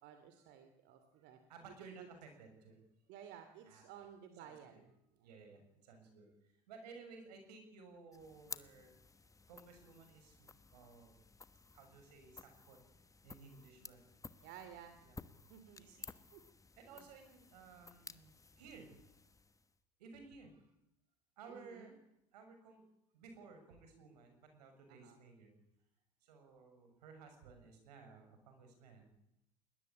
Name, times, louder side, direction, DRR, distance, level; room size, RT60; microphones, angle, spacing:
voice 1, 0.0-1.4 1.8-2.1 3.1-4.9 5.2-5.3 14.4-15.0 15.5-15.9 16.3-16.4 16.9-17.1 21.5-22.0 24.9-25.2, right 9 dB, 60° right, 8 dB, 2.7 m, -55 dB
voice 2, 1.2-2.8 3.6-4.1 4.4-4.8 5.2-6.3 6.7-9.0 9.5-11.3 11.7-12.8 13.2-14.0 15.0-15.2 15.8-16.1 16.8-19.0 20.0-20.7 21.4-22.0 22.3-22.8 23.1-25.5 26.2-29.1, right 4 dB, 80° right, 6 dB, 6.7 m, -57 dB
sound 1, 8.1-19.8, left 4 dB, 15° left, 1.2 m, -55 dB
20.5 x 20.0 x 8.7 m, 0.82 s
hypercardioid pair, 85°, 20 cm